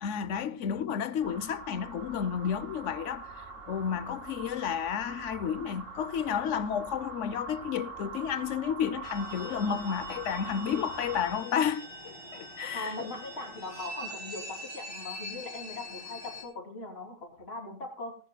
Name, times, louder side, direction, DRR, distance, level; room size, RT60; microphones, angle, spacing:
voice 1, 0.0-3.3 3.7-13.1, left 8 dB, 75° left, 1.1 m, -31 dB
sound 1, 1.2-11.3, right 4 dB, 80° right, 3.5 m, -43 dB
sound 2, 9.0-16.4, equal, 25° left, 3.6 m, -43 dB
voice 2, 12.7-18.2, left 2 dB, 55° left, 3.4 m, -40 dB
19.5 x 13.5 x 2.3 m
omnidirectional pair, 1.3 m